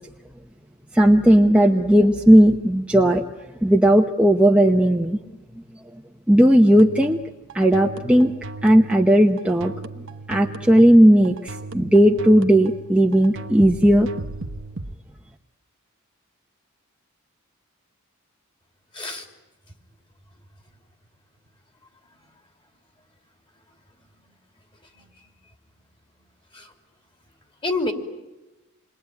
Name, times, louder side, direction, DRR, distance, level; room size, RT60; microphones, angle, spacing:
voice 1, 0.9-3.2 3.6-5.2 6.3-7.2 7.5-8.4 8.6-9.7 10.3-14.1, equal, 5° right, 2 dB, 0.9 m, -16 dB
sound 1, 6.7-14.9, right 2 dB, 60° right, 1.2 m, -36 dB
voice 2, 18.9-19.3 24.2-24.3 24.9-25.2 26.5-26.7 27.6-27.9, left 2 dB, 25° left, 5 dB, 3.0 m, -28 dB
28.0 x 21.5 x 9.4 m, 1.1 s
head